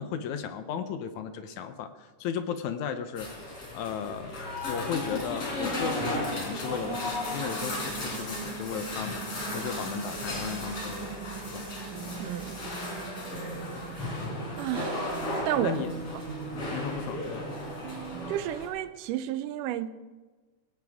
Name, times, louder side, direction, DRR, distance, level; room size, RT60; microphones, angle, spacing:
voice 1, 0.0-3.3 3.7-4.3 4.7-9.2 9.5-11.2 11.5-11.6 15.6-15.9 16.7-17.5, left 7 dB, 75° left, 2.2 m, -35 dB
sound 1, 3.2-18.7, left 2 dB, 50° left, 5.2 m, -35 dB
sound 2, 6.1-18.3, right 6 dB, 75° right, 2.5 m, -41 dB
voice 2, 12.2-12.6 14.6-15.1 15.5-15.9 18.3-19.9, right 12 dB, 90° right, 2.3 m, -31 dB
21.0 x 17.5 x 3.6 m
omnidirectional pair, 3.6 m